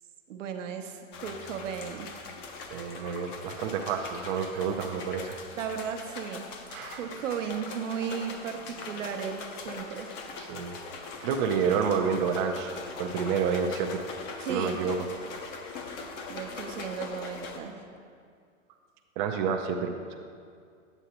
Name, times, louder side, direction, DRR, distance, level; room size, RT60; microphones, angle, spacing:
voice 1, 0.3-2.1 5.6-6.5 7.0-10.1 14.4-14.8 16.3-17.8, right 7 dB, 70° right, 5 dB, 0.9 m, -35 dB
sound 1, 1.1-17.6, left 4 dB, 30° left, 0.6 m, -41 dB
voice 2, 2.7-5.4 6.7-7.0 10.4-10.8 11.2-14.0 14.5-15.1 19.2-20.2, right 6 dB, 40° right, 3 dB, 0.5 m, -29 dB
8.2 x 8.0 x 2.9 m, 2.2 s
hypercardioid pair, 125°, 39 cm